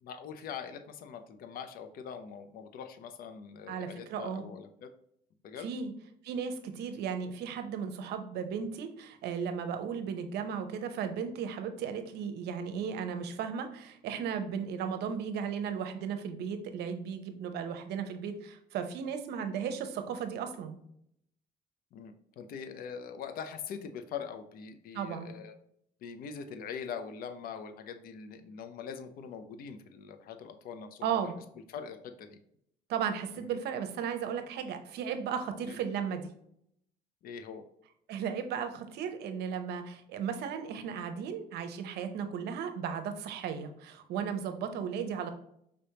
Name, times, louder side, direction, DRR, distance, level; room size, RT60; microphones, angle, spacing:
voice 1, 0.0-4.9 5.4-5.7 21.9-25.5 26.0-31.3 31.7-32.4 33.4-33.5 35.7-35.8 37.2-37.6, left 7 dB, 60° left, 7 dB, 0.5 m, -43 dB
voice 2, 3.7-4.4 5.6-5.9 6.2-20.8 24.9-25.3 31.0-31.3 32.9-36.3 38.1-45.3, right 7 dB, 75° right, 7 dB, 0.7 m, -35 dB
5.0 x 3.4 x 2.8 m, 0.72 s
cardioid pair, 110°, 17 cm